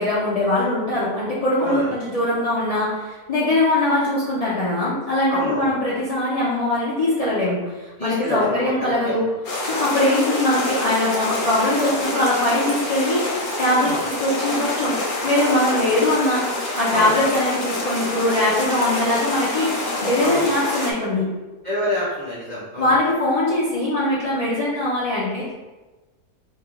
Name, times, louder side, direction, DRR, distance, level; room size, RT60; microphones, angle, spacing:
voice 1, 0.0-9.2 9.7-13.3 13.6-14.9 15.2-16.4 16.8-21.3 22.8-25.5, left 1 dB, 60° left, -9 dB, 0.3 m, -21 dB
voice 2, 1.6-2.0 5.3-5.7 8.0-9.2 13.8-14.0 16.9-17.2 20.2-20.5 21.6-22.9, left 1 dB, 55° right, -7 dB, 0.5 m, -27 dB
sound 1, 9.4-20.9, left 1 dB, 75° left, 1.1 m, -26 dB
3.0 x 2.4 x 3.6 m, 1.2 s
omnidirectional pair, 1.6 m